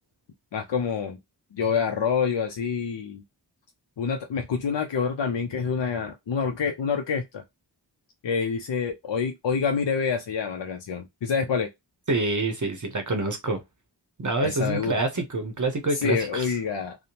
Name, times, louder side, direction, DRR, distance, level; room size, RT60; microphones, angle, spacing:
voice 1, 0.5-1.2 1.5-3.2 4.0-7.4 8.2-11.7 14.4-15.0 15.9-17.0, left 6 dB, 70° left, 0.5 m, -27 dB
voice 2, 12.1-13.6 14.2-16.5, right 2 dB, 45° right, 0.7 m, -26 dB
2.7 x 2.1 x 2.8 m
wide cardioid pair, 45°, 44 cm